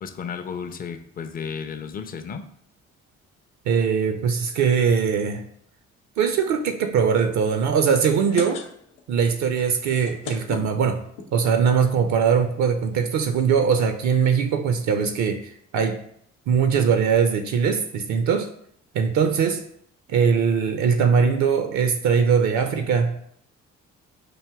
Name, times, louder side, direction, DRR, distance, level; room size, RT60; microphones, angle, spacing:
voice 1, 0.0-2.4, left 6 dB, 25° left, 8 dB, 0.4 m, -33 dB
voice 2, 3.7-5.4 6.2-8.6 9.1-11.0 11.3-16.0 16.5-18.5 18.9-19.6 20.1-23.2, right 6 dB, 50° right, 7 dB, 0.5 m, -21 dB
sound 1, 8.2-9.1 9.4-9.5 9.8-11.3 12.0-12.1 12.3-12.4 12.6-12.8, left 4 dB, 75° left, 0.7 m, -36 dB
6.0 x 2.6 x 2.2 m, 0.67 s
hypercardioid pair, 45°, 36 cm